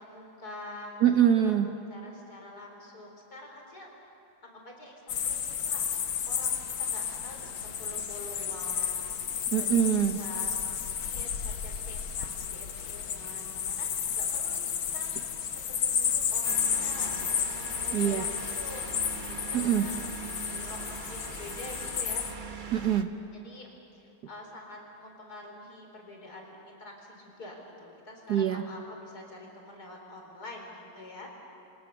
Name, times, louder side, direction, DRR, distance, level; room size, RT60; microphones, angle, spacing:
voice 1, 0.0-0.9 1.4-3.9 4.4-5.8 6.2-13.9 14.1-15.1 15.7-19.9 20.3-22.3 23.3-31.3, left 1 dB, 50° left, 1 dB, 4.8 m, -46 dB
voice 2, 1.0-1.7 9.5-10.2 17.9-18.2 19.5-19.9 22.7-23.1 28.3-28.6, right 9 dB, 60° right, 6 dB, 1.4 m, -24 dB
sound 1, 5.1-22.3, left 8 dB, 75° left, 2.0 m, -32 dB
sound 2, 16.4-23.0, right 5 dB, 40° right, 0.7 m, -42 dB
29.0 x 24.0 x 7.0 m, 2.8 s
omnidirectional pair, 2.2 m